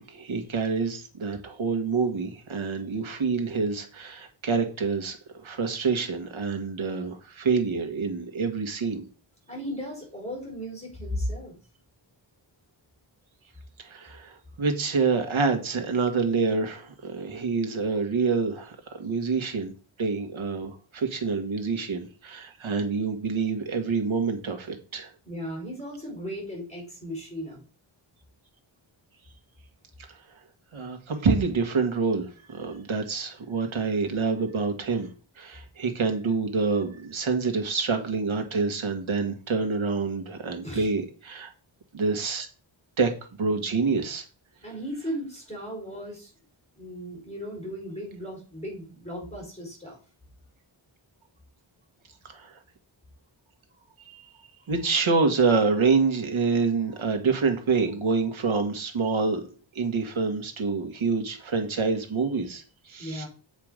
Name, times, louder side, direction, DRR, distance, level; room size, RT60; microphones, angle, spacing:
voice 1, 0.0-9.1 13.8-25.1 30.7-35.1 35.4-41.5 41.9-42.5 43.0-43.1 43.4-44.2 52.3-52.6 54.1-54.2 54.7-59.4 59.7-63.3, right 4 dB, 80° right, 5 dB, 1.8 m, -27 dB
voice 2, 9.5-11.5 25.2-27.6 40.6-40.9 44.6-46.3 46.7-50.0 63.0-63.3, equal, 15° left, -2 dB, 4.7 m, -36 dB
7.8 x 5.1 x 5.1 m, 0.37 s
wide cardioid pair, 140°, 47 cm